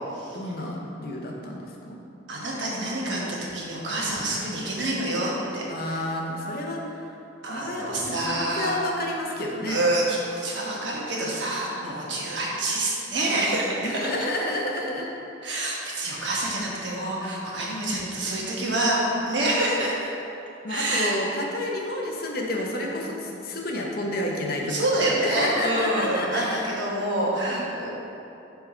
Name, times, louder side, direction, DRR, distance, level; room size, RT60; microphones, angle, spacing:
voice 1, 0.3-2.0 5.7-6.8 7.5-9.9 12.1-12.3 13.8-15.1 20.6-24.7 25.0-26.8, left 1 dB, 50° left, -1 dB, 0.7 m, -30 dB
voice 2, 2.3-3.2 3.5-6.0 7.4-8.7 9.7-14.1 15.4-19.9 20.7-21.1 24.7-27.9, right 1 dB, 65° right, -4 dB, 1.1 m, -27 dB
4.5 x 4.4 x 5.3 m, 2.8 s
head